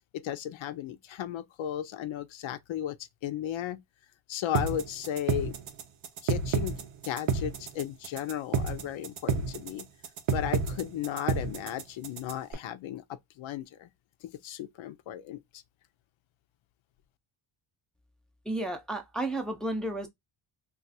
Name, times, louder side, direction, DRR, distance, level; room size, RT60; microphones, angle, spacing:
voice 1, 0.1-3.0 3.2-3.8 4.3-5.6 6.2-9.9 10.3-13.9 14.2-15.4, left 11 dB, 80° left, 0.6 m, -35 dB
sound 1, 4.5-12.5, right 5 dB, 90° right, 0.8 m, -30 dB
voice 2, 18.5-20.1, right 1 dB, ahead, 0.5 m, -32 dB
2.4 x 2.4 x 4.0 m
wide cardioid pair, 140°, 47 cm